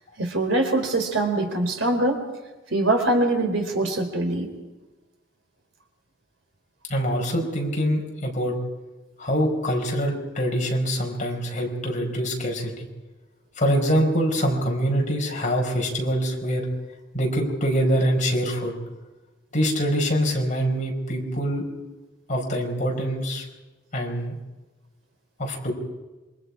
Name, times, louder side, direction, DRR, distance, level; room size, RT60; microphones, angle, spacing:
voice 1, 0.2-2.2 2.7-4.5, right 2 dB, 75° right, 4 dB, 4.1 m, -23 dB
voice 2, 6.9-8.5 9.2-12.9 13.6-16.6 17.1-18.7 19.5-21.6 22.3-23.5 23.9-24.3 25.4-25.7, equal, 40° left, 0 dB, 5.4 m, -24 dB
27.0 x 25.0 x 4.8 m, 1.1 s
head